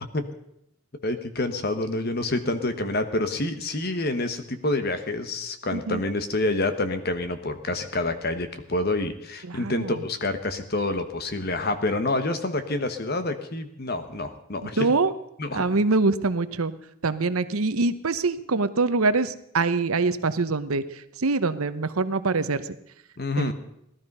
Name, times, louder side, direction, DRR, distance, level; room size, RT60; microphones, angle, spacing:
voice 1, 1.0-14.9 15.4-15.6 23.2-23.5, left 2 dB, 45° left, 9 dB, 1.3 m, -27 dB
voice 2, 9.5-10.0 14.8-15.1 15.5-16.7 17.0-20.8 21.2-22.6 23.4-23.5, right 3 dB, 80° right, 13 dB, 0.9 m, -24 dB
17.5 x 12.5 x 5.5 m, 0.78 s
head